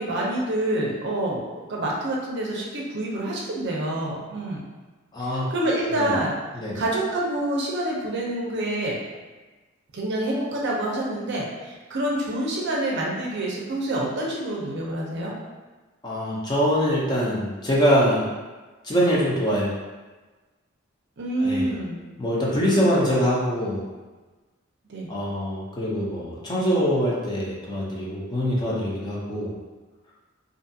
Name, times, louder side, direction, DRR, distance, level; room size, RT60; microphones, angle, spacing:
voice 1, 0.0-4.6 5.5-6.3 6.7-9.0 9.9-15.3 21.2-22.0 24.9-25.1, right 1 dB, 60° right, -3 dB, 0.5 m, -27 dB
voice 2, 5.1-5.5 5.9-6.1 6.5-6.8 16.0-18.3 18.8-19.7 21.4-21.7 22.2-23.8 25.1-29.5, equal, 20° left, -6 dB, 0.5 m, -23 dB
2.5 x 2.3 x 2.7 m, 1.2 s
head